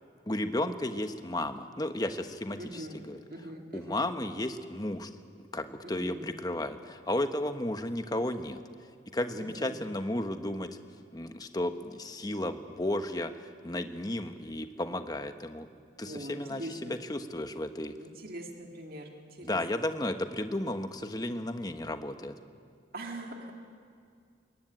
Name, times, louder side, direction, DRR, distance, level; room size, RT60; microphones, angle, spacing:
voice 1, 0.3-3.2 3.7-5.1 5.5-8.6 9.1-10.7 11.1-15.7 16.0-17.9 19.4-22.3, left 1 dB, 20° left, 8 dB, 1.1 m, -33 dB
voice 2, 2.6-4.1 5.8-6.3 9.4-9.8 16.0-17.0 18.0-19.6 22.9-23.5, right 1 dB, 50° right, 2 dB, 2.3 m, -42 dB
23.5 x 21.5 x 9.2 m, 2.2 s
head